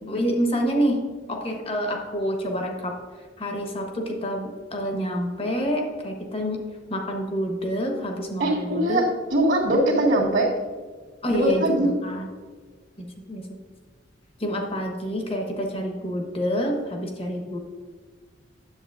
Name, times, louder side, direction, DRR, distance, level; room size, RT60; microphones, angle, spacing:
voice 1, 0.0-1.0 1.3-3.0 3.4-6.6 6.9-9.0 11.2-12.3 13.0-13.6 14.4-17.6, equal, 30° left, 2 dB, 1.1 m, -27 dB
voice 2, 8.4-9.0 9.3-10.5 11.3-11.9, right 1 dB, 60° right, -8 dB, 1.7 m, -21 dB
9.9 x 7.7 x 2.5 m, 1.5 s
head